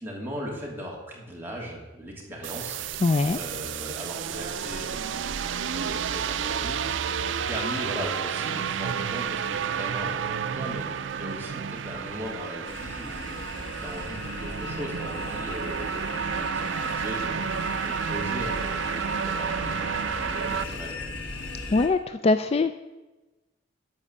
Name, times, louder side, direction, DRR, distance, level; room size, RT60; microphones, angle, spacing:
voice 1, 0.0-2.9 3.3-13.3 13.7-17.4 17.8-21.0, equal, 10° right, -3 dB, 2.9 m, -38 dB
sound 1, 2.4-20.6, right 7 dB, 90° right, 0.5 m, -31 dB
voice 2, 3.0-3.4 21.7-22.8, left 3 dB, 35° left, 11 dB, 0.4 m, -22 dB
sound 2, 12.7-21.9, left 3 dB, 80° left, 1.7 m, -38 dB
12.5 x 5.5 x 8.2 m, 1.1 s
head